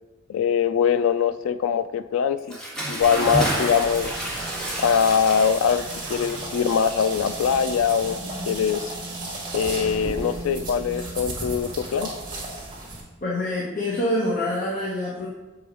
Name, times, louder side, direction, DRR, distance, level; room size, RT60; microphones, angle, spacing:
voice 1, 0.3-2.6 2.9-4.1 4.8-8.2 8.5-8.9 9.5-12.1, left 7 dB, 90° left, 12 dB, 0.3 m, -22 dB
Bathtub (filling or washing) / Splash splatter, 2.4-8.3, right 1 dB, 5° left, 1.5 m, -31 dB
sound 1, 3.0-13.0, right 2 dB, 25° right, 1.8 m, -34 dB
voice 2, 13.2-15.3, left 1 dB, 40° left, -5 dB, 1.1 m, -26 dB
7.7 x 5.0 x 3.8 m, 1.1 s
head